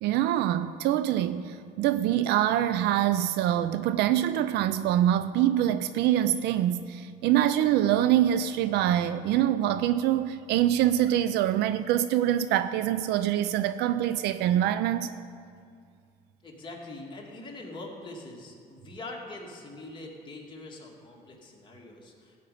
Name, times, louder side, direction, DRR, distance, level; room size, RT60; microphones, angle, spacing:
voice 1, 0.0-15.1, right 11 dB, 80° right, 0.5 m, -25 dB
voice 2, 16.4-22.4, left 2 dB, 30° left, 2.4 m, -43 dB
15.0 x 5.4 x 8.5 m
cardioid pair, 110°, 17 cm